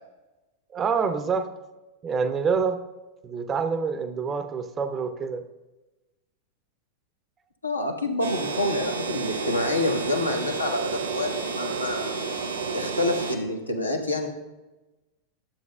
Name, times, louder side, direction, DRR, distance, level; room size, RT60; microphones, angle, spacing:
voice 1, 0.7-1.5 2.0-2.8 3.2-5.4, right 5 dB, 25° right, 10 dB, 0.5 m, -26 dB
voice 2, 7.6-12.2 12.7-14.3, left 2 dB, 85° left, 3 dB, 0.9 m, -27 dB
sound 1, 8.2-13.4, right 4 dB, 70° right, 0.9 m, -31 dB
11.5 x 7.5 x 2.2 m, 1.1 s
figure-of-eight pair, 90°, 0 cm